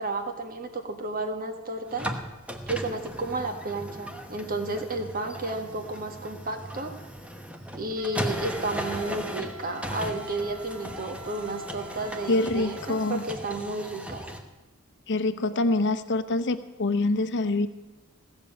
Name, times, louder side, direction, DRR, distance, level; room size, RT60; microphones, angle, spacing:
voice 1, 0.0-2.1 2.7-6.9 7.7-14.3, right 2 dB, 40° right, 6 dB, 1.5 m, -32 dB
sound 1, 1.9-14.4, equal, 5° right, 1.1 m, -37 dB
Wind instrument woodwind instrument, 8.0-13.3, left 2 dB, 85° right, 1.9 m, -45 dB
voice 2, 12.3-13.2 15.1-17.7, left 2 dB, 55° left, 10 dB, 0.8 m, -25 dB
16.0 x 7.0 x 8.4 m, 1.1 s
head